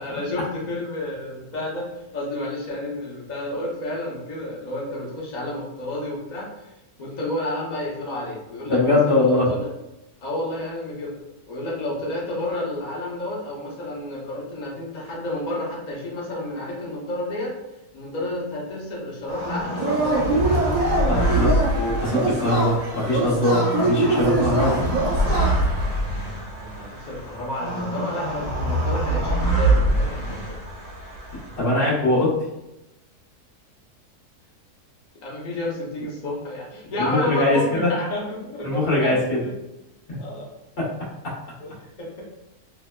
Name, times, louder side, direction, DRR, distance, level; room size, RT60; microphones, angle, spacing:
voice 1, 0.0-6.7 7.0-9.7 10.2-11.1 11.5-17.6 17.9-20.7 21.0-21.4 26.6-30.6 35.2-39.5 40.2-40.5 41.6-42.2, left 1 dB, 85° left, -4 dB, 0.4 m, -31 dB
voice 2, 8.7-9.5 21.1-21.5 21.8-24.8 31.6-32.3 37.0-37.9 38.6-39.4 40.1-40.2 40.8-40.9, left 2 dB, 40° left, -7 dB, 1.1 m, -21 dB
sound 1, 19.3-31.6, right 1 dB, 60° left, 1.3 m, -25 dB
Yell / Cheering, 19.8-25.9, right 2 dB, 85° right, 0.4 m, -24 dB
3.0 x 2.1 x 2.2 m, 0.91 s
omnidirectional pair, 1.6 m